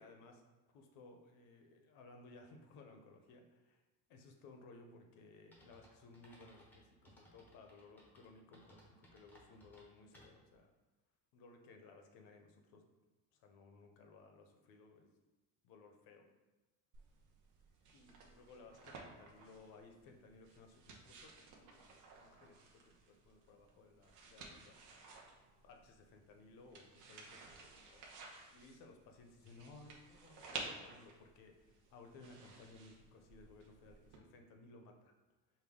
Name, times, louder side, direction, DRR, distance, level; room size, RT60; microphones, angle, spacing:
voice 1, 0.0-3.8 4.1-10.7 11.3-12.8 13.3-15.1 15.6-16.3 17.9-24.8 25.6-28.1 28.5-35.1, left 3 dB, 65° left, 4 dB, 0.7 m, -60 dB
sound 1, 5.5-10.6, equal, 5° left, 0.6 m, -64 dB
sound 2, 16.9-34.2, right 4 dB, 55° right, 0.7 m, -54 dB
5.1 x 2.2 x 3.5 m, 1.1 s
cardioid pair, 165°, 38 cm